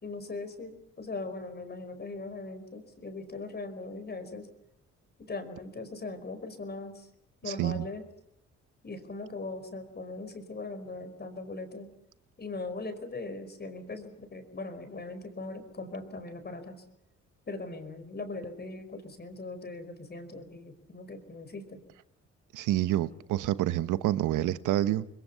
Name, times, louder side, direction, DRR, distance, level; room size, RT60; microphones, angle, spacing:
voice 1, 0.0-4.5 5.2-7.1 7.4-8.0 8.8-11.9 12.4-16.8 17.5-21.8, left 3 dB, 35° left, 4.9 m, -40 dB
voice 2, 7.5-7.8 22.5-25.1, right 13 dB, 85° right, 1.1 m, -28 dB
28.0 x 21.5 x 6.9 m
cardioid pair, 90°, 30 cm